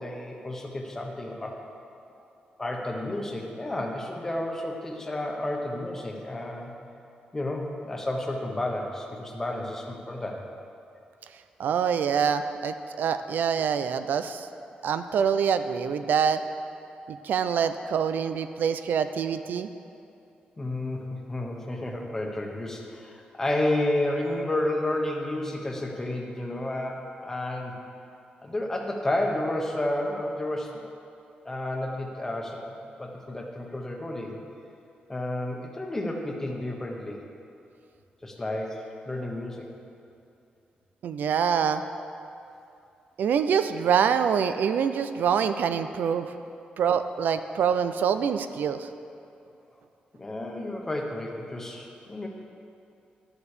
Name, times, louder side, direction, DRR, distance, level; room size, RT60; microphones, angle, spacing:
voice 1, 0.0-1.6 2.6-6.7 7.3-10.4 20.6-27.7 28.4-30.8 31.4-34.4 35.1-37.2 38.2-39.7 50.2-52.3, left 1 dB, 15° left, 1 dB, 1.1 m, -31 dB
voice 2, 11.6-14.5 14.8-16.4 17.1-19.7 41.0-41.8 43.2-46.3 46.8-48.9, right 7 dB, 80° right, 10 dB, 0.5 m, -25 dB
12.0 x 7.2 x 6.7 m, 2.6 s
wide cardioid pair, 180°, 3 cm